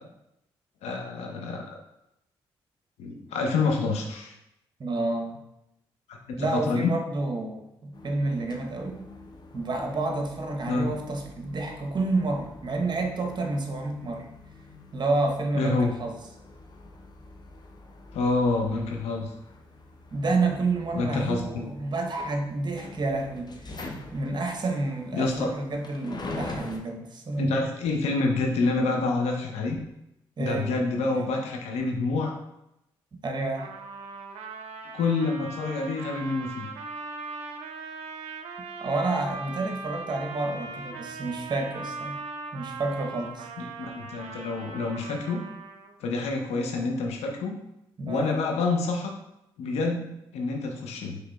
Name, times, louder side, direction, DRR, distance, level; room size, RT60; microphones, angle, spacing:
voice 1, 0.8-1.8 3.0-4.3 6.1-6.9 10.7-10.9 15.5-15.9 18.1-19.3 20.9-21.7 25.1-25.5 27.4-29.8 30.4-32.3 34.9-36.7 43.8-45.4 46.0-47.5 48.1-49.1 49.6-51.2, left 3 dB, 80° left, 2 dB, 0.6 m, -27 dB
voice 2, 4.8-5.4 6.4-9.1 9.5-14.3 14.9-16.2 20.1-27.6 30.4-30.7 33.2-33.7 38.8-42.2 42.5-43.5 48.0-48.4, right 2 dB, 45° right, 3 dB, 0.8 m, -29 dB
sound 1, 7.9-26.8, left 2 dB, 40° left, 0.6 m, -44 dB
Trumpet, 33.6-46.0, right 4 dB, 75° right, 0.5 m, -40 dB
5.0 x 3.1 x 2.3 m, 0.87 s
supercardioid pair, 50°, 11 cm